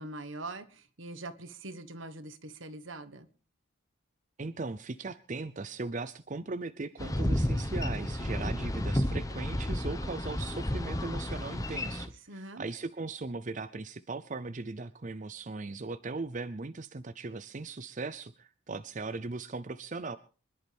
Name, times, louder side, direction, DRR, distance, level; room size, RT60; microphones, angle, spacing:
voice 1, 0.0-3.3 12.3-12.7, right 2 dB, 70° right, 11 dB, 1.5 m, -43 dB
voice 2, 4.4-20.2, right 3 dB, 40° right, 12 dB, 0.6 m, -38 dB
Boat Water vehicle, 7.0-12.1, left 1 dB, 15° left, 1.1 m, -31 dB
25.5 x 11.0 x 3.5 m, 0.37 s
head